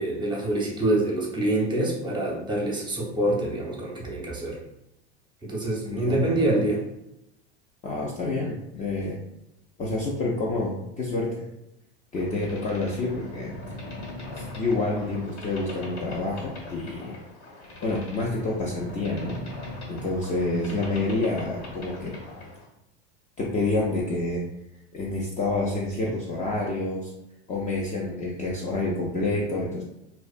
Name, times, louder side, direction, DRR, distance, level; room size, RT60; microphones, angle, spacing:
voice 1, 0.0-4.6 5.4-6.8, right 1 dB, 15° right, -3 dB, 0.7 m, -26 dB
voice 2, 5.9-6.5 7.8-9.2 9.8-11.5 12.1-13.5 14.3-17.1 17.8-19.4 19.9-22.1 23.4-24.4 24.9-27.1 27.5-29.8, left 2 dB, 25° left, -4 dB, 0.4 m, -28 dB
Boat Water vehicle, 12.1-22.7, left 2 dB, 80° left, 1.2 m, -40 dB
2.4 x 2.1 x 2.4 m, 0.84 s
hypercardioid pair, 90°, 33 cm